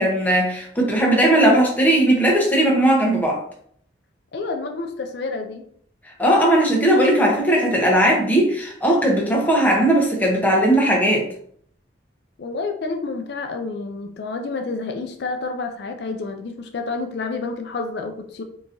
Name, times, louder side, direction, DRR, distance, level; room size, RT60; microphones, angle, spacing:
voice 1, 0.0-3.4 6.2-11.3, right 1 dB, 10° left, 0.7 m, -18 dB
voice 2, 4.3-5.7 12.4-18.4, left 3 dB, 60° left, 0.4 m, -29 dB
3.8 x 2.9 x 2.5 m
head